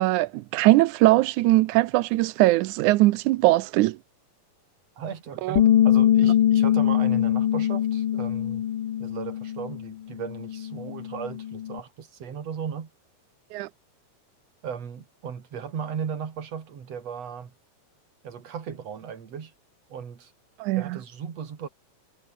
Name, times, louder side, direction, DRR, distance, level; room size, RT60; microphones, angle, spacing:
voice 1, 0.0-4.0 5.4-5.6 13.5-13.7 20.6-21.0, right 18 dB, 80° right, 1.8 m, -21 dB
voice 2, 5.0-8.6 9.0-12.9 14.6-17.5 18.2-19.5 19.9-20.3 20.7-21.7, right 7 dB, 50° right, 3.5 m, -36 dB
Bass guitar, 5.6-9.9 10.2-11.8, left 10 dB, 80° left, 1.1 m, -23 dB
omnidirectional pair, 4.1 m